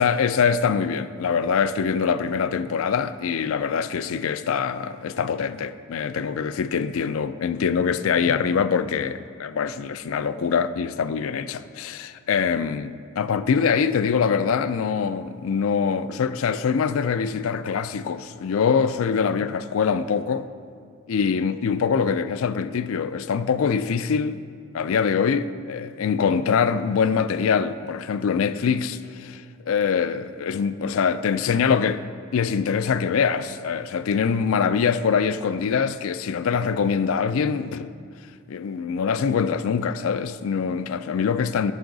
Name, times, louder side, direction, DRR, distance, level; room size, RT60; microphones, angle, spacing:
voice 1, 0.0-20.5 21.1-24.4 24.7-32.0 32.3-37.9 38.5-41.7, left 6 dB, 70° left, 0.4 m, -24 dB
14.0 x 6.1 x 3.9 m
head